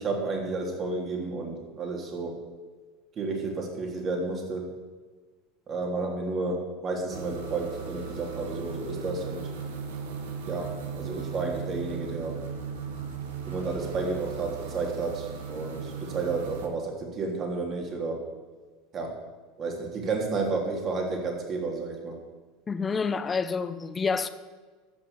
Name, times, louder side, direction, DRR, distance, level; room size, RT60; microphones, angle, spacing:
voice 1, 0.0-2.3 3.2-4.6 5.7-9.5 10.4-12.4 13.5-18.2 18.9-19.2 19.6-22.2, right 3 dB, 40° right, 3.5 m, -31 dB
sound 1, 7.1-16.7, right 6 dB, 85° right, 1.6 m, -37 dB
voice 2, 22.7-24.3, left 5 dB, 25° left, 0.9 m, -28 dB
14.0 x 6.1 x 7.4 m
hypercardioid pair, 95°, 0 cm